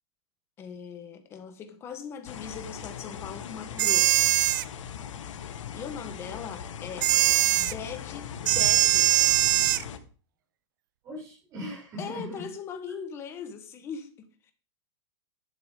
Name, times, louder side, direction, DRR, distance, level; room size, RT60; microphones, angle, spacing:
voice 1, 0.6-4.3 5.7-7.1 7.5-9.4 12.0-14.5, left 7 dB, 15° left, 1.2 m, -40 dB
sound 1, 2.3-10.0, left 7 dB, 90° left, 1.6 m, -40 dB
sound 2, 3.8-4.6 7.0-7.7 8.5-9.8, right 15 dB, 40° right, 0.4 m, -21 dB
voice 2, 11.0-12.4, equal, 20° right, 6.9 m, -39 dB
11.5 x 9.8 x 3.7 m
supercardioid pair, 175°, 16 cm